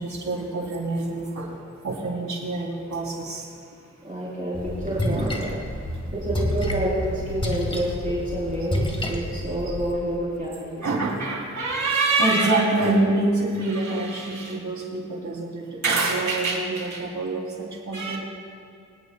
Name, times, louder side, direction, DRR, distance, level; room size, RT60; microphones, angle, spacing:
voice 1, 0.0-1.6 1.8-3.5 10.8-18.2, right 2 dB, 85° right, -2 dB, 3.6 m, -25 dB
voice 2, 4.0-5.6 6.1-10.8, right 1 dB, 30° right, -8 dB, 4.0 m, -28 dB
Splash splatter, 4.5-9.8, left 1 dB, 20° left, 2.0 m, -29 dB
24.5 x 19.5 x 2.4 m, 2.4 s
wide cardioid pair, 120°, 29 cm